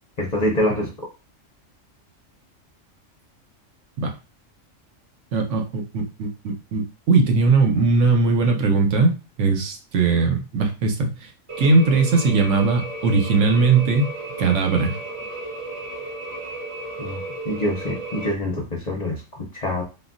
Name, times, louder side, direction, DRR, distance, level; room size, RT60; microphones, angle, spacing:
voice 1, 0.2-0.9 17.0-19.8, left 1 dB, 45° left, -1 dB, 0.6 m, -25 dB
voice 2, 5.3-9.1 9.4-11.3 11.6-14.1 14.4-15.0, right 4 dB, 70° right, 3 dB, 1.0 m, -19 dB
sound 1, 11.5-18.3, right 2 dB, 35° right, 0.6 m, -34 dB
3.6 x 2.3 x 2.5 m, 0.30 s
omnidirectional pair, 1.4 m